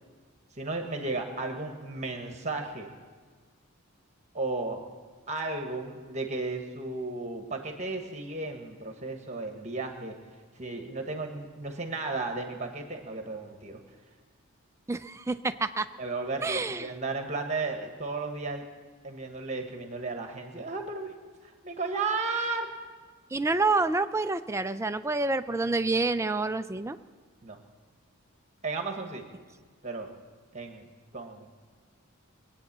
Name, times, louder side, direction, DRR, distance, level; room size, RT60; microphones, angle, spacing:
voice 1, 0.5-2.9 4.3-4.8 5.3-10.1 10.5-13.8 16.0-18.6 19.0-21.1 21.4-22.7 27.4-27.6 28.6-29.3 29.8-30.1 30.5-30.8 31.1-31.7, right 3 dB, 30° right, 4 dB, 1.3 m, -34 dB
voice 2, 14.9-15.9 16.4-16.9 23.3-27.0, right 3 dB, 10° right, 10 dB, 0.4 m, -28 dB
21.0 x 8.9 x 7.4 m, 1.5 s
head